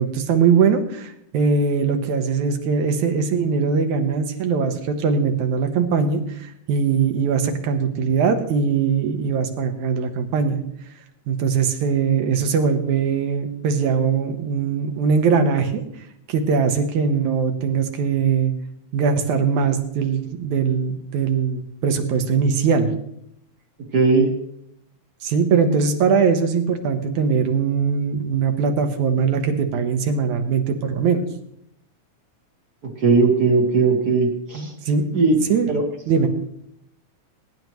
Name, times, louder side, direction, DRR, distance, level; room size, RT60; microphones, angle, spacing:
voice 1, 0.0-10.6 11.3-15.8 16.3-18.5 18.9-22.9 25.2-31.2 34.6-35.0 35.5-35.7 36.1-36.3, right 6 dB, 75° right, 6 dB, 2.5 m, -21 dB
voice 2, 23.9-24.3 33.0-34.7 35.1-35.4 35.7-35.8, right 4 dB, 45° right, 2 dB, 1.4 m, -18 dB
22.5 x 10.5 x 3.1 m, 0.74 s
omnidirectional pair, 3.5 m